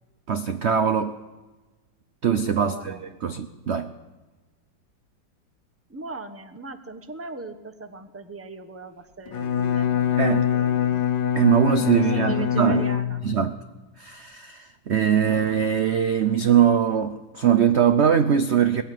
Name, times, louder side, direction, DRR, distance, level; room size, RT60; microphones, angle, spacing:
voice 1, 0.3-1.1 2.2-3.9 10.2-10.5 11.3-12.9 13.2-13.5 14.0-18.8, right 8 dB, 55° right, 9 dB, 0.7 m, -21 dB
voice 2, 2.6-3.0 5.9-11.1 11.8-13.2, right 3 dB, 10° right, 10 dB, 0.8 m, -39 dB
Bowed string instrument, 9.3-13.5, left 9 dB, 70° left, 1.9 m, -24 dB
20.0 x 15.0 x 9.4 m, 1.2 s
omnidirectional pair, 2.1 m